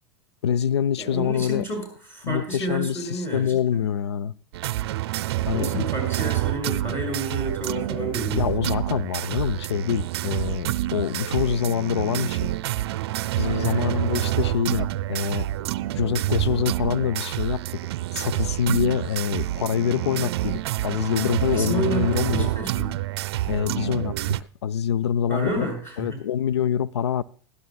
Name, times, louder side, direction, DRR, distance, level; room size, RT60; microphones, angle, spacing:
voice 1, 0.4-1.7 2.2-4.3 5.5-5.9 8.3-12.5 13.4-15.5 15.9-17.8 18.1-22.5 23.5-24.1 24.6-25.7 26.0-27.2, left 8 dB, 85° left, 0.4 m, -25 dB
voice 2, 1.0-3.8 5.5-8.5 13.5-14.0 21.4-22.9 25.3-26.2, right 1 dB, 15° left, 6.5 m, -30 dB
sound 1, 4.5-24.4, right 15 dB, 70° right, 0.5 m, -27 dB
Keyboard (musical), 13.4-15.7, left 1 dB, 65° left, 7.2 m, -32 dB
21.0 x 12.5 x 2.3 m
hypercardioid pair, 95°, 14 cm